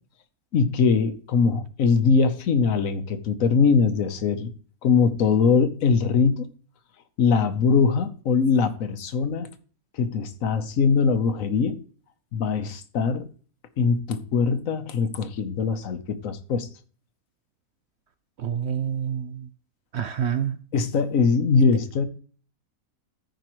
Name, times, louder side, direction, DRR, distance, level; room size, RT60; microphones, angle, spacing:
voice 1, 0.5-4.5 4.8-6.5 7.2-9.5 10.0-11.8 12.3-13.2 13.8-16.7 20.7-22.1, left 5 dB, 65° left, 1.2 m, -22 dB
voice 2, 18.4-19.5 19.9-20.6, right 8 dB, 65° right, 0.7 m, -27 dB
14.0 x 5.1 x 3.0 m
omnidirectional pair, 1.5 m